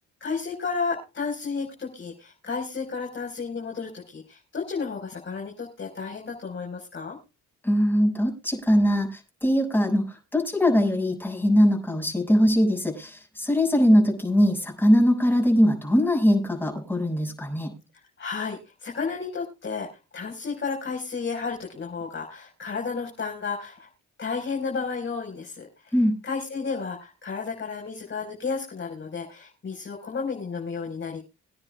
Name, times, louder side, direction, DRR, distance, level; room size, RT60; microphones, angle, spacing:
voice 1, 0.2-7.2 18.2-19.9 20.1-23.9 24.2-25.9 26.2-31.2, left 5 dB, 40° left, 0 dB, 4.6 m, -32 dB
voice 2, 7.6-17.7 25.9-26.1, equal, 5° left, 0 dB, 6.6 m, -21 dB
24.0 x 9.8 x 2.3 m, 0.29 s
cardioid pair, 90°, 30 cm